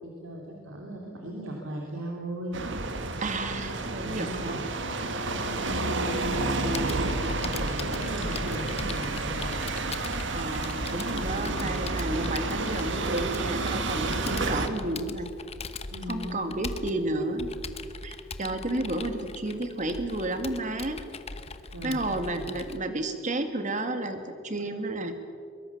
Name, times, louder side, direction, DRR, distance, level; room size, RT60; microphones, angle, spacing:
voice 1, 0.0-2.6 4.0-4.7 5.2-9.4 11.1-11.8 15.9-16.4 21.7-22.6, right 1 dB, 90° right, -1 dB, 3.2 m, -38 dB
sound 1, 2.5-14.7, right 2 dB, 65° right, 1.8 m, -30 dB
voice 2, 3.2-4.6 10.3-15.3 16.1-17.5 18.0-21.0 21.8-25.2, right 2 dB, 40° right, 7 dB, 2.1 m, -31 dB
Computer keyboard, 6.2-22.8, left 3 dB, 30° left, 1.1 m, -39 dB
23.0 x 22.5 x 7.3 m, 2.4 s
head